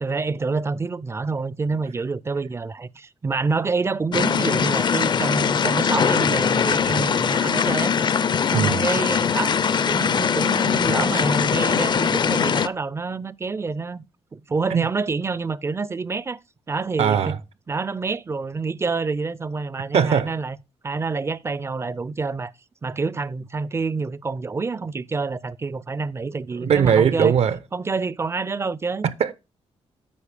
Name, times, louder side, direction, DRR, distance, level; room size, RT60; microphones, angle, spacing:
voice 1, 0.0-8.0 8.5-9.6 9.8-14.0 14.3-16.4 16.7-17.4 17.7-20.6 20.8-22.5 22.8-27.4 27.7-29.1, right 4 dB, 25° right, 0.4 m, -27 dB
sound 1, 4.1-12.7, left 7 dB, 40° left, 0.4 m, -21 dB
voice 2, 17.0-17.4 19.9-20.3 26.6-27.6 29.2-29.3, right 8 dB, 65° right, 0.7 m, -19 dB
8.4 x 5.1 x 4.9 m
cardioid pair, 100°, 11 cm